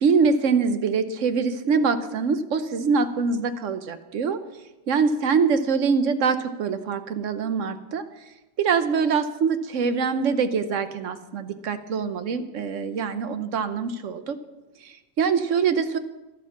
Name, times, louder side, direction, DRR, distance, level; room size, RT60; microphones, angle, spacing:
voice 1, 0.0-4.4 4.9-8.0 8.6-14.4 14.8-16.0, right 5 dB, 90° right, 10 dB, 1.2 m, -24 dB
12.0 x 11.5 x 5.9 m, 1.1 s
omnidirectional pair, 1.2 m